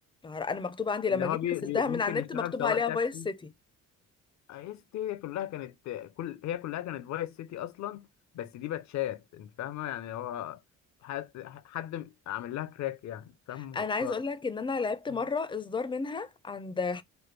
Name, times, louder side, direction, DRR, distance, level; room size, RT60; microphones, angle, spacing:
voice 1, 0.2-1.4 1.7-3.5 13.6-17.0, left 4 dB, 15° left, 0.4 m, -31 dB
voice 2, 1.1-3.3 4.5-8.1 8.3-10.6 11.0-14.2 15.1-15.2, left 12 dB, 65° left, 0.5 m, -36 dB
3.3 x 2.2 x 3.2 m
cardioid pair, 90°, 30 cm